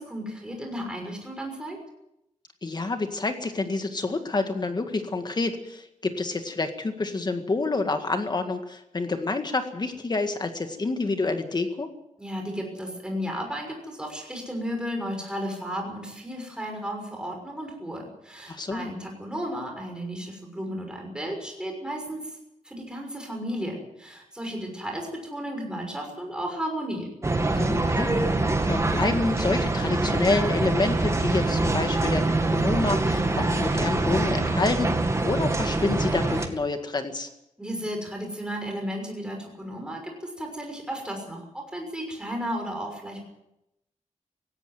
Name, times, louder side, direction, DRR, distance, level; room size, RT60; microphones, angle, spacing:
voice 1, 0.0-1.8 12.2-22.4 22.6-27.1 37.6-43.2, equal, 5° right, 2 dB, 6.2 m, -34 dB
voice 2, 2.6-11.9 18.5-18.9 27.6-28.2 28.6-32.3 32.5-34.9 35.2-37.3, left 3 dB, 35° left, 7 dB, 1.9 m, -28 dB
sound 1, 27.2-36.5, right 2 dB, 20° right, 2.1 m, -24 dB
17.5 x 17.0 x 9.3 m, 0.84 s
wide cardioid pair, 150°, 13 cm